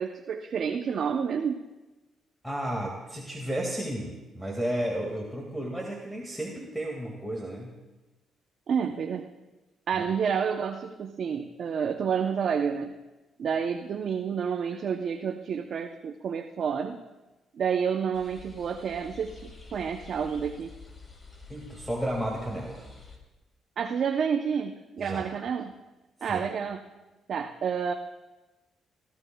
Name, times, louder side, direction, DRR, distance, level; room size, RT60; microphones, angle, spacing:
voice 1, 0.0-1.6 8.7-9.3 9.9-13.0 13.4-17.0 17.5-20.7 23.8-25.7 26.2-26.8 27.3-27.9, right 7 dB, 60° right, 4 dB, 0.6 m, -29 dB
voice 2, 2.4-7.7 9.9-10.1 21.5-22.9 25.0-25.2 26.3-26.4, right 1 dB, ahead, -1 dB, 1.9 m, -33 dB
sound 1, 18.1-23.2, left 4 dB, 35° left, 2.7 m, -48 dB
23.0 x 13.0 x 2.3 m, 1.1 s
cardioid pair, 90°, 0 cm